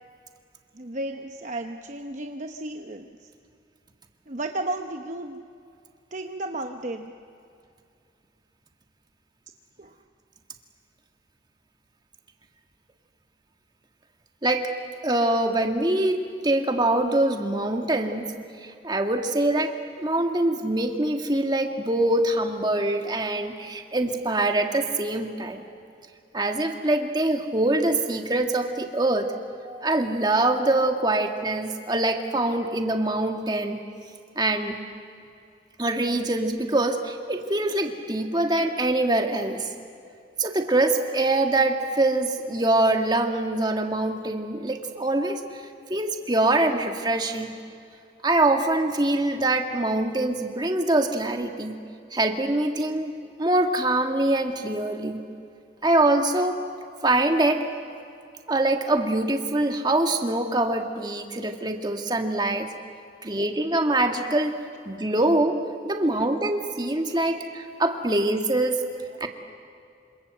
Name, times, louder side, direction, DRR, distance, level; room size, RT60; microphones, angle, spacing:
voice 1, 0.7-3.3 4.3-5.4 6.1-7.1 9.8-9.9 63.2-63.4, right 2 dB, 40° right, 5 dB, 1.0 m, -33 dB
voice 2, 15.0-18.3 18.6-25.6 26.3-29.3 29.6-33.8 34.4-34.8 35.8-39.7 40.4-45.6 45.9-47.5 48.2-51.8 52.1-53.1 53.4-55.2 55.8-56.6 57.0-57.7 58.5-62.7 63.2-64.6 64.9-68.8 69.2-69.3, right 2 dB, 25° right, 4 dB, 1.8 m, -24 dB
27.0 x 27.0 x 7.8 m, 2.4 s
head